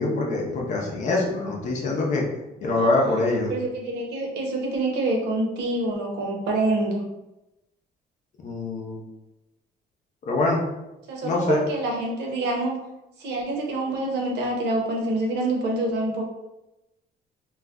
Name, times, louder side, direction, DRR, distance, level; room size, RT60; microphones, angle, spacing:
voice 1, 0.0-2.2 2.6-3.5 8.4-9.0 10.3-10.6 11.2-11.6, left 2 dB, 45° left, -1 dB, 0.6 m, -24 dB
voice 2, 2.6-3.2 3.5-7.0 11.1-12.8 13.2-16.2, right 2 dB, 70° right, 0 dB, 0.7 m, -26 dB
2.4 x 2.1 x 3.5 m, 0.95 s
cardioid pair, 170°, 18 cm